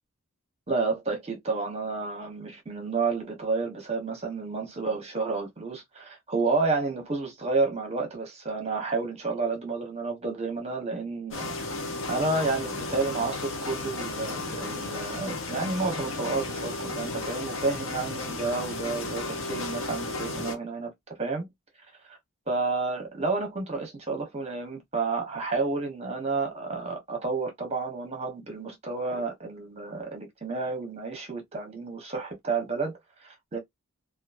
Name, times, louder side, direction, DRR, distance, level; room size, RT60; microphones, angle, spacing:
voice 1, 0.7-11.6 12.1-21.5 22.1-22.2 22.5-33.6, right 3 dB, 30° right, 0.9 m, -30 dB
sound 1, 11.3-20.6, left 2 dB, 60° left, 0.7 m, -34 dB
2.9 x 2.4 x 2.4 m
head